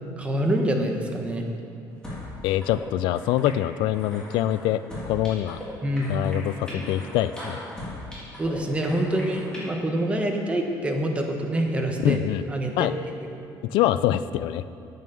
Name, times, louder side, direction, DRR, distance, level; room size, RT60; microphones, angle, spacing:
voice 1, 0.2-1.4 5.8-6.1 8.4-12.2 12.5-12.9 13.2-13.3, right 1 dB, 15° right, 2 dB, 1.2 m, -26 dB
sound 1, 2.0-2.3 2.6-2.8 3.2-3.5 3.9-5.6 6.0-8.5 8.8-9.6, left 1 dB, 10° left, 3.4 m, -39 dB
voice 2, 2.4-5.6 6.1-7.6 12.0-12.4 12.8-12.9 13.6-14.6, left 12 dB, 85° left, 15 dB, 0.4 m, -24 dB
9.2 x 9.0 x 7.0 m, 2.5 s
cardioid pair, 145°, 8 cm